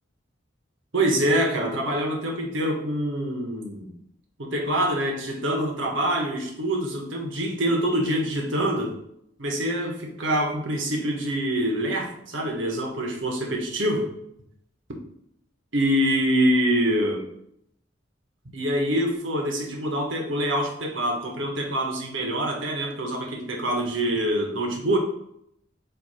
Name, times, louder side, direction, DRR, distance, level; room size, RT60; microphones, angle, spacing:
voice 1, 0.9-3.9 4.4-9.0 9.4-14.1 15.7-17.2 18.5-25.0, right 1 dB, 70° right, 1 dB, 1.5 m, -25 dB
8.0 x 3.1 x 4.3 m, 0.73 s
head